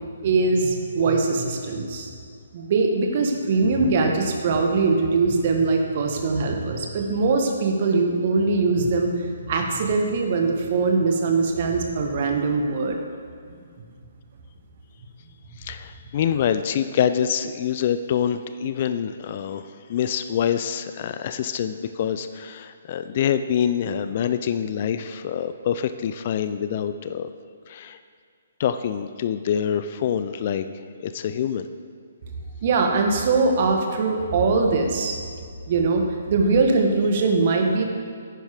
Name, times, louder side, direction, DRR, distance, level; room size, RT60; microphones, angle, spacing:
voice 1, 0.2-2.1 2.5-13.0 32.6-35.2 35.7-37.8, right 3 dB, 45° right, 3 dB, 1.3 m, -22 dB
voice 2, 15.6-27.3 27.7-28.0 28.6-30.7 31.0-31.7, left 8 dB, 40° left, 10 dB, 0.4 m, -25 dB
11.0 x 9.4 x 3.6 m, 2.2 s
figure-of-eight pair, 130°, 0 cm